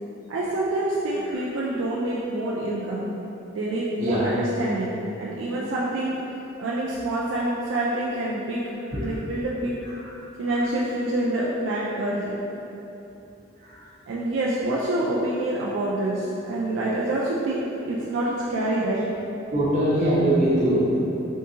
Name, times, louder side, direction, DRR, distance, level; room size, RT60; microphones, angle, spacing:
voice 1, 0.3-3.1 3.5-6.1 6.6-8.6 9.0-9.7 10.4-12.4 14.1-19.1, right 1 dB, 70° right, -6 dB, 0.4 m, -26 dB
voice 2, 19.5-21.0, right 1 dB, 40° right, -10 dB, 0.9 m, -22 dB
3.6 x 2.6 x 2.7 m, 3.0 s
head